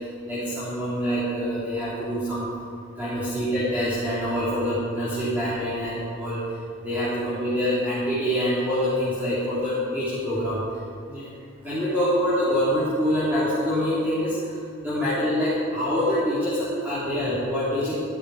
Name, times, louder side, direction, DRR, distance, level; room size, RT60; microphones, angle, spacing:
voice 1, 0.2-2.5 3.0-6.4 6.8-10.6 11.1-11.2 11.6-17.9, equal, 10° right, -13 dB, 3.5 m, -25 dB
14.0 x 12.5 x 5.0 m, 2.4 s
head